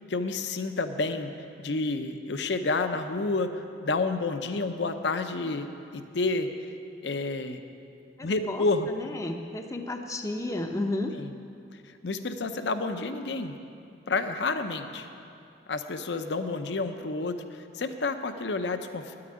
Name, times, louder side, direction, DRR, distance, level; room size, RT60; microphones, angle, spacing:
voice 1, 0.1-1.3 1.6-6.5 7.0-7.6 8.2-8.9 11.1-11.3 12.0-13.5 14.1-15.1 15.7-19.2, left 3 dB, 70° left, 8 dB, 0.7 m, -30 dB
voice 2, 8.2-11.1, left 2 dB, 15° left, 4 dB, 0.6 m, -33 dB
9.5 x 8.8 x 9.9 m, 2.6 s
head